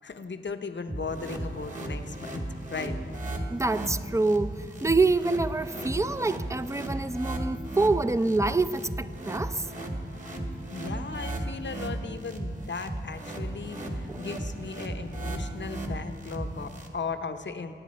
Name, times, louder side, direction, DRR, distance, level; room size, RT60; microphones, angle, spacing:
voice 1, 0.0-3.0 6.9-7.0 10.7-17.7, left 4 dB, 65° left, 8 dB, 0.8 m, -37 dB
sound 1, 0.9-16.9, right 1 dB, 40° right, 1.8 m, -35 dB
voice 2, 3.5-9.7 14.1-14.2, right 3 dB, 15° right, 13 dB, 0.5 m, -26 dB
22.0 x 9.1 x 4.3 m, 2.4 s
cardioid pair, 45°, 20 cm